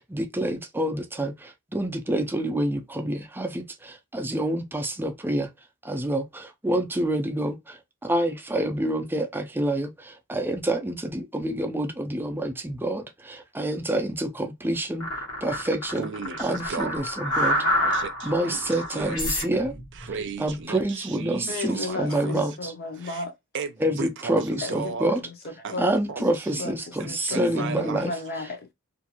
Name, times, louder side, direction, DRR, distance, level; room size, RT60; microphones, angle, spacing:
voice 1, 0.0-5.5 5.8-15.1 15.4-16.1 16.4-17.6 18.2-19.7 20.4-22.7 23.8-25.2 25.8-28.1, right 1 dB, 10° right, 0.4 m, -27 dB
sound 1, 15.0-20.6, equal, 90° left, 1.2 m, -28 dB
voice 2, 16.0-17.0 17.3-19.2 19.5-22.6 23.0-23.2 23.5-25.1 25.6-25.8 26.1-26.7 27.0-28.1, right 4 dB, 55° right, 0.5 m, -36 dB
voice 3, 21.5-23.3 24.6-26.3 26.6-28.7, left 3 dB, 45° left, 0.6 m, -35 dB
2.5 x 2.4 x 2.8 m
head